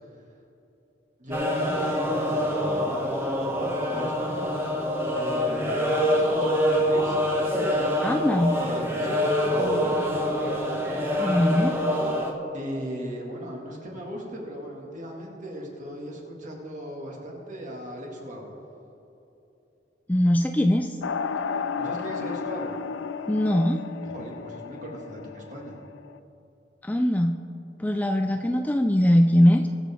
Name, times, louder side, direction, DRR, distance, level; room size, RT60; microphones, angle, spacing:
voice 1, 1.2-4.3 4.6-4.7 5.2-7.2 8.5-10.0 12.5-18.5 21.4-22.7 24.0-25.8, equal, 40° right, -1 dB, 2.2 m, -37 dB
sound 1, 1.3-12.3, equal, 15° right, 1.2 m, -25 dB
voice 2, 8.0-8.6 11.2-11.8 20.1-21.0 23.3-23.8 26.8-27.4 27.8-29.7, equal, 10° left, 5 dB, 0.3 m, -21 dB
sound 2, 21.0-26.2, left 5 dB, 80° left, 0.4 m, -33 dB
21.0 x 7.2 x 3.7 m, 2.9 s
head